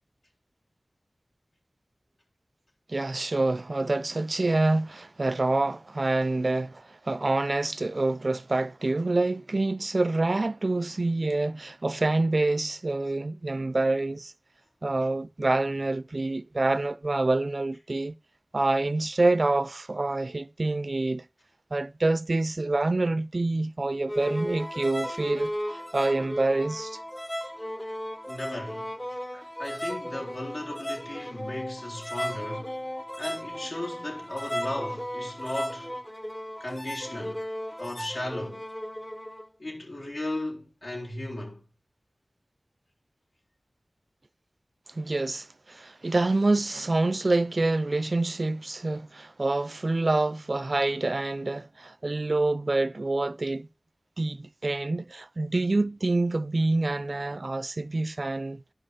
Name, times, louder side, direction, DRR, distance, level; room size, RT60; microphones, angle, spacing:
voice 1, 2.9-14.3 14.8-18.1 18.5-21.2 21.7-27.0 29.3-29.4 44.9-53.7 54.2-58.7, right 2 dB, 55° right, 0.4 m, -27 dB
sound 1, 24.1-39.5, equal, 15° left, 0.8 m, -35 dB
voice 2, 28.3-28.9 29.6-32.8 33.2-36.0 36.6-37.4 37.8-38.6 39.6-41.6, left 1 dB, 70° left, 3.8 m, -36 dB
11.5 x 5.5 x 5.2 m
wide cardioid pair, 45°, 0 cm